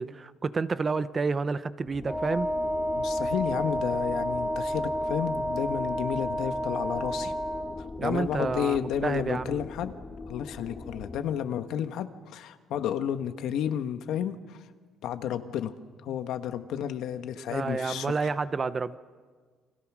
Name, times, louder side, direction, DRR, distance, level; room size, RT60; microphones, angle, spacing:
voice 1, 0.0-2.5 8.0-9.6 17.4-19.0, right 4 dB, 30° right, 14 dB, 0.8 m, -30 dB
sound 1, 1.8-11.2, left 3 dB, 25° left, 1.3 m, -42 dB
Wind instrument woodwind instrument, 2.0-7.8, equal, 10° right, 2.8 m, -30 dB
voice 2, 3.0-7.3 8.0-10.0 10.3-14.6 15.0-15.7 16.0-18.1, left 9 dB, 80° left, 8 dB, 1.4 m, -31 dB
29.0 x 25.5 x 6.3 m, 1.5 s
cardioid pair, 130°, 0 cm